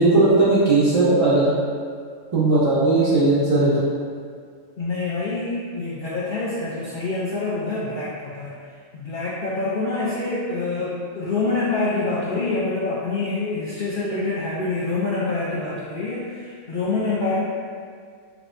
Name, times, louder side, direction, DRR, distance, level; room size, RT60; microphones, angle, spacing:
voice 1, 0.0-1.5 2.3-3.9, right 2 dB, 65° right, -9 dB, 0.3 m, -17 dB
voice 2, 2.9-3.3 4.8-8.5 8.9-17.4, left 3 dB, 75° left, -8 dB, 0.4 m, -26 dB
4.5 x 2.1 x 2.5 m, 2.1 s
omnidirectional pair, 1.4 m